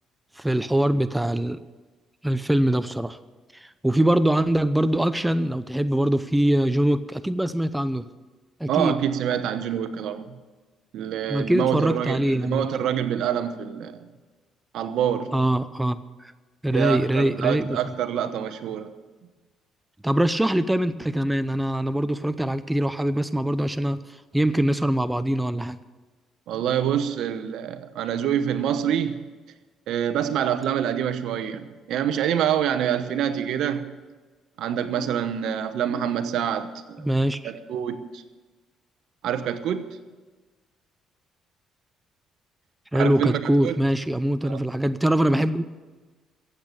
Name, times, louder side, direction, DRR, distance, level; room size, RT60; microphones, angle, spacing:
voice 1, 0.4-1.6 2.2-3.2 3.5-8.1 8.6-9.0 11.3-12.7 15.3-16.0 16.6-17.9 20.0-24.0 24.3-25.8 37.0-37.5 42.9-45.7, right 1 dB, 10° right, 0.7 m, -23 dB
voice 2, 8.7-10.3 10.9-14.1 14.7-15.4 16.7-18.9 26.5-29.3 29.9-34.0 34.6-37.1 37.4-38.2 39.2-40.0 42.9-43.7 44.4-44.6, right 9 dB, 75° right, 1.0 m, -26 dB
14.5 x 8.5 x 9.0 m
supercardioid pair, 75°, 0 cm